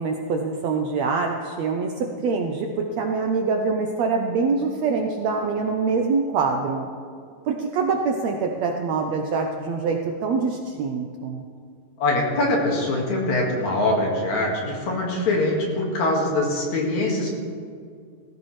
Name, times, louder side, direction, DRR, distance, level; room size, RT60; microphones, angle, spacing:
voice 1, 0.0-6.9 7.5-11.4, right 4 dB, 80° right, 2 dB, 1.5 m, -24 dB
voice 2, 12.0-17.3, left 2 dB, 60° left, -1 dB, 3.1 m, -23 dB
17.5 x 14.5 x 3.2 m, 2.2 s
omnidirectional pair, 4.0 m